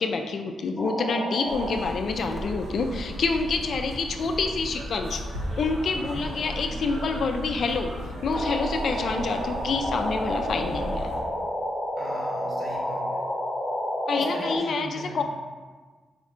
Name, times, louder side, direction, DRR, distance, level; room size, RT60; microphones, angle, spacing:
voice 1, 0.0-5.2 5.6-7.9 8.2-11.1 14.1-15.2, left 4 dB, 60° left, 5 dB, 0.3 m, -27 dB
sound 1, 0.8-1.7 2.3-2.4 8.3-14.6, equal, 10° left, 0.9 m, -30 dB
sound 2, 1.5-11.2, equal, 80° right, 1.0 m, -35 dB
voice 2, 5.9-6.3 11.9-13.2 14.2-15.2, right 1 dB, 35° right, -5 dB, 1.4 m, -40 dB
4.3 x 4.1 x 2.5 m, 1.4 s
cardioid pair, 130°, 0 cm